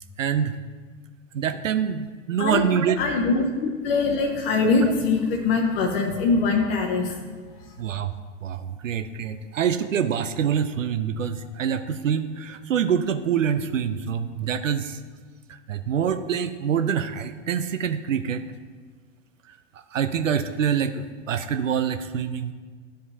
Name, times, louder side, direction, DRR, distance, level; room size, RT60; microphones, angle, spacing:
voice 1, 0.2-0.5 1.3-3.0 4.8-4.9 7.8-8.1 8.4-15.0 15.5-18.4 19.5-22.5, right 8 dB, 80° right, 9 dB, 0.5 m, -26 dB
voice 2, 3.0-7.2 7.7-7.8, left 4 dB, 50° left, 1 dB, 1.0 m, -23 dB
12.5 x 5.1 x 2.7 m, 1.5 s
figure-of-eight pair, 90°, 38 cm